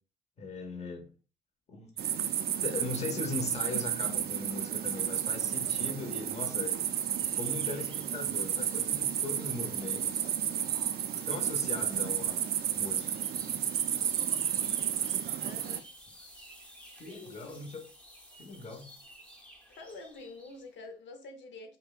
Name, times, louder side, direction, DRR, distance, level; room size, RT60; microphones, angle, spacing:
voice 1, 0.4-1.1 1.7-2.0 2.6-6.8 7.3-10.3 11.3-13.2 16.9-17.8 18.4-18.9, left 3 dB, 35° left, 0.8 m, -39 dB
sound 1, 2.0-15.8, right 10 dB, 55° right, 0.4 m, -32 dB
sound 2, 6.8-20.7, equal, 5° left, 0.8 m, -54 dB
voice 2, 15.4-15.9 17.0-17.6 19.7-21.8, left 3 dB, 70° left, 0.7 m, -47 dB
5.1 x 2.1 x 2.4 m
cardioid pair, 90°, 20 cm